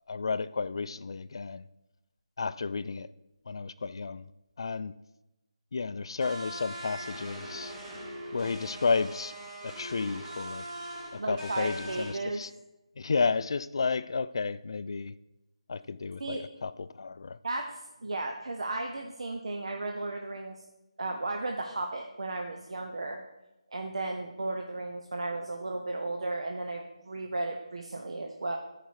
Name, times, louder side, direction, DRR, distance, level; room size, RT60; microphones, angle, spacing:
voice 1, 0.1-1.7 2.4-3.1 3.5-4.3 4.6-4.9 5.7-7.7 8.3-9.3 9.6-10.6 11.1-12.5 13.0-15.1 15.7-17.4, left 4 dB, 50° left, 15 dB, 0.4 m, -32 dB
sound 1, 6.2-12.1, right 1 dB, 15° right, 1.4 m, -41 dB
voice 2, 11.2-12.4 16.2-16.4 17.4-20.6 21.0-23.2 23.7-28.6, right 2 dB, 65° right, 2 dB, 0.9 m, -35 dB
13.5 x 5.0 x 4.8 m, 0.99 s
figure-of-eight pair, 165°, 3 cm